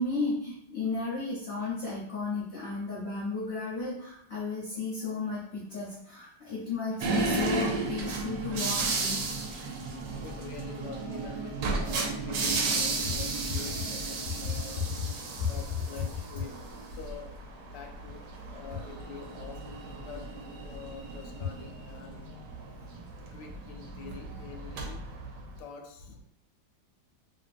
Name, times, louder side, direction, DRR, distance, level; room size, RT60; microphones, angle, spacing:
voice 1, 0.0-9.2 12.0-12.1 15.4-15.5, left 3 dB, 50° left, -7 dB, 0.8 m, -34 dB
sound 1, 7.0-25.6, right 3 dB, 70° right, 1.1 m, -34 dB
voice 2, 10.2-15.0 15.4-16.5 16.9-17.3 17.7-18.2 18.5-19.6 20.1-20.3 20.6-22.2 23.3-25.0 25.6-26.2, left 6 dB, 75° left, 2 dB, 1.2 m, -46 dB
2.9 x 2.9 x 2.5 m, 0.71 s
omnidirectional pair, 2.0 m